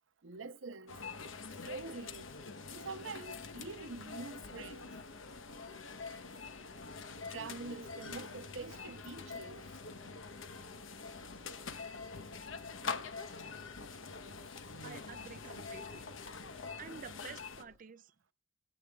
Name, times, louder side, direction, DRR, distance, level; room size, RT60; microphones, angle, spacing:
voice 1, 0.2-1.0 1.6-2.3 2.7-4.9 7.3-9.6, right 3 dB, 70° right, 0.7 m, -45 dB
sound 1, 0.9-17.6, left 4 dB, 75° left, 1.0 m, -45 dB
Engine, 1.9-17.8, left 1 dB, 50° left, 3.2 m, -65 dB
voice 2, 14.8-16.1 16.8-18.1, right 6 dB, 40° right, 0.5 m, -50 dB
22.0 x 8.6 x 2.3 m
head